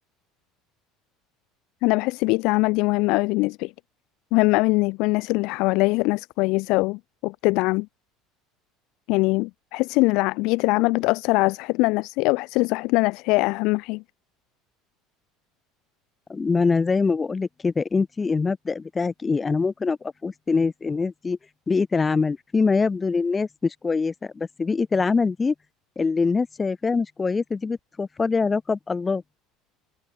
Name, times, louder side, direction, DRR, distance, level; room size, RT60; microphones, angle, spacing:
voice 1, 1.8-3.7 4.3-7.9 9.1-14.0, left 24 dB, 65° left, 0.7 m, -22 dB
voice 2, 16.3-21.4 21.7-25.5 26.0-29.2, left 4 dB, 25° left, 4.1 m, -24 dB
hypercardioid pair, 75°, 0 cm